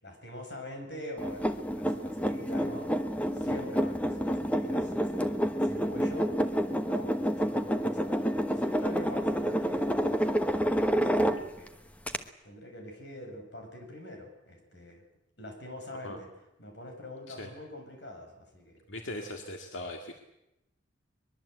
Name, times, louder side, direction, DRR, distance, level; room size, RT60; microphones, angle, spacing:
voice 1, 0.0-2.9 3.3-5.3 5.6-6.4 6.9-8.2 8.5-11.7 12.4-15.0 15.4-16.3 16.6-18.8 19.2-19.4, left 1 dB, 60° left, 3 dB, 7.2 m, -45 dB
sound 1, 1.2-11.7 12.1-12.2, equal, 5° left, 1.2 m, -29 dB
voice 2, 18.9-20.1, left 1 dB, 90° left, 3 dB, 2.3 m, -39 dB
23.0 x 22.0 x 8.2 m, 0.90 s
head